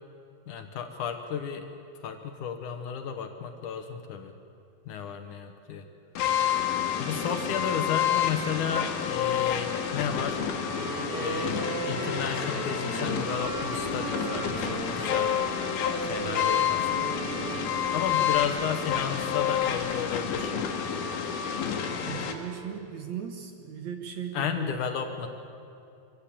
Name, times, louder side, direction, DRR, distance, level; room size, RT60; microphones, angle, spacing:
voice 1, 0.5-1.7 2.0-4.3 4.9-5.9 7.0-10.4 11.2-15.3 16.1-17.2 17.9-20.5 24.3-25.3, left 7 dB, 70° left, 6 dB, 2.4 m, -33 dB
sound 1, 6.2-22.3, left 8 dB, 85° left, 3.4 m, -29 dB
Wind instrument woodwind instrument, 10.6-17.8, right 3 dB, 80° right, 4.7 m, -36 dB
sound 2, 13.1-20.6, equal, 20° right, 8.1 m, -47 dB
voice 2, 22.0-24.7 25.0-25.1, right 8 dB, 60° right, 4 dB, 2.1 m, -38 dB
25.0 x 16.0 x 8.6 m, 2.6 s
omnidirectional pair, 4.2 m